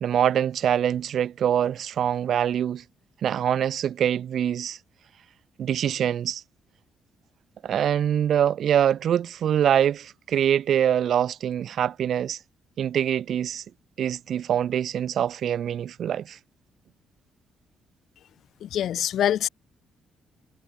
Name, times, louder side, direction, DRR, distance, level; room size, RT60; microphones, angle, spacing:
voice 1, 0.0-2.8 3.2-4.8 5.6-6.4 7.6-12.4 12.8-13.6 14.0-16.4, right 9 dB, 65° right, 1.5 m, -24 dB
voice 2, 18.6-19.5, left 10 dB, 70° left, 1.4 m, -24 dB
cardioid pair, 90°, 0 cm